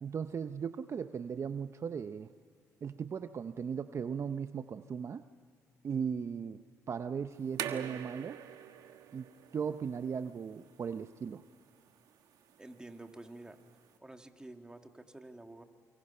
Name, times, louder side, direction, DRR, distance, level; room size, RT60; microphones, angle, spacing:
voice 1, 0.0-2.3 2.8-5.2 5.8-6.6 6.9-8.4 9.1-11.4, right 6 dB, 45° right, 10 dB, 0.7 m, -37 dB
sound 1, 7.3-14.0, right 9 dB, 75° right, 1.4 m, -46 dB
voice 2, 12.6-13.6 14.0-15.6, right 2 dB, 10° right, 5 dB, 2.0 m, -49 dB
29.0 x 25.0 x 5.6 m, 2.2 s
cardioid pair, 85°, 6 cm